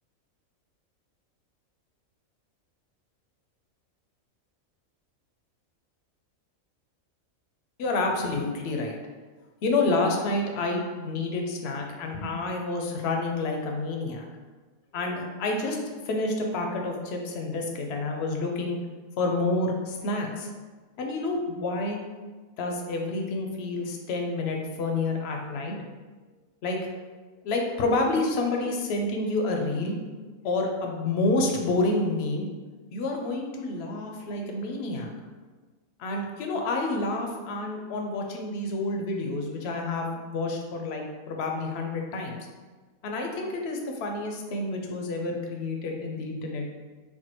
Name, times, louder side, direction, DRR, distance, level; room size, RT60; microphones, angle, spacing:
voice 1, 7.8-9.0 9.6-14.2 14.9-18.8 19.2-20.5 21.0-22.0 22.6-25.9 26.6-27.1 27.4-30.0 30.4-32.5 32.9-35.1 36.0-42.4 43.0-46.7, left 2 dB, 65° left, 2 dB, 0.7 m, -29 dB
4.4 x 2.1 x 2.9 m, 1.3 s
omnidirectional pair, 1.4 m